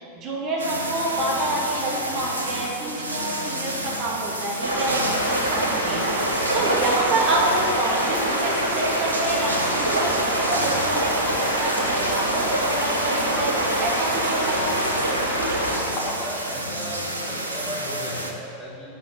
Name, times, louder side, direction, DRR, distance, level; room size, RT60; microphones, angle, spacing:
voice 1, 0.0-14.7, right 2 dB, 35° right, -4 dB, 2.6 m, -28 dB
sound 1, 0.6-18.3, right 1 dB, 80° right, 1.1 m, -30 dB
sound 2, 4.6-15.8, right 1 dB, 90° left, 2.9 m, -24 dB
Liquid, 10.3-16.5, left 1 dB, 35° left, 2.3 m, -40 dB
voice 2, 16.1-18.9, equal, ahead, -6 dB, 2.4 m, -36 dB
9.0 x 7.1 x 8.6 m, 2.6 s
figure-of-eight pair, 90°, 0 cm